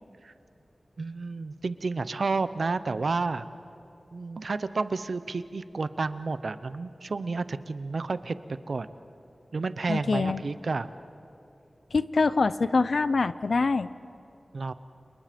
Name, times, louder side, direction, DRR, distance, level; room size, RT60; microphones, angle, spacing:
voice 1, 1.0-3.5 4.1-8.3 8.7-8.9 9.5-10.9 14.5-14.7, right 3 dB, 70° right, 13 dB, 0.8 m, -31 dB
voice 2, 9.9-10.4 11.9-13.9, left 4 dB, 75° left, 15 dB, 0.6 m, -24 dB
30.0 x 28.0 x 5.2 m, 2.8 s
wide cardioid pair, 90°, 0 cm